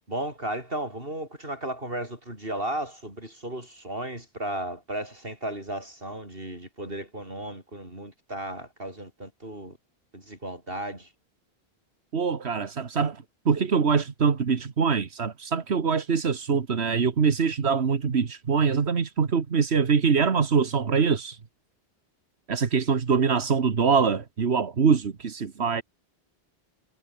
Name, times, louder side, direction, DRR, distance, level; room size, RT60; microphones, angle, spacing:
voice 1, 0.1-9.8 10.1-11.1, right 1 dB, 60° right, 8.3 m, -35 dB
voice 2, 12.1-21.4 22.5-25.8, right 5 dB, 90° right, 1.8 m, -24 dB
omnidirectional pair, 1.1 m